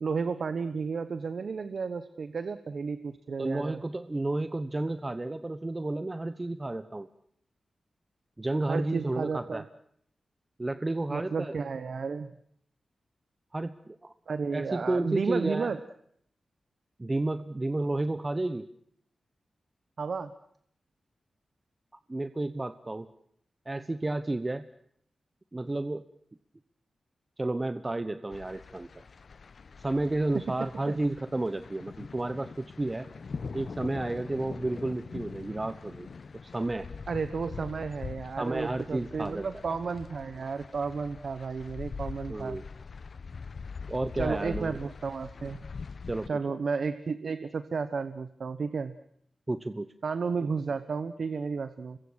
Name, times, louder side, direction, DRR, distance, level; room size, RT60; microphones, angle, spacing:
voice 1, 0.0-3.8 8.7-9.6 11.1-12.3 14.3-15.8 20.0-20.3 30.9-31.0 37.1-42.6 44.2-45.6 46.3-48.9 50.0-52.0, right 5 dB, 70° right, 11 dB, 1.1 m, -32 dB
voice 2, 3.4-7.1 8.4-9.6 10.6-11.5 13.5-14.1 14.5-15.7 17.0-18.7 22.1-23.1 23.7-24.6 25.5-26.0 27.4-28.9 29.8-33.1 33.5-36.1 36.4-36.9 38.4-39.5 42.3-42.6 43.9-44.8 46.1-46.3 49.5-49.9, right 2 dB, 30° right, 11 dB, 1.1 m, -31 dB
sound 1, 28.3-46.3, left 5 dB, 65° left, 0.9 m, -43 dB
26.5 x 22.5 x 6.4 m, 0.67 s
cardioid pair, 55°, 0 cm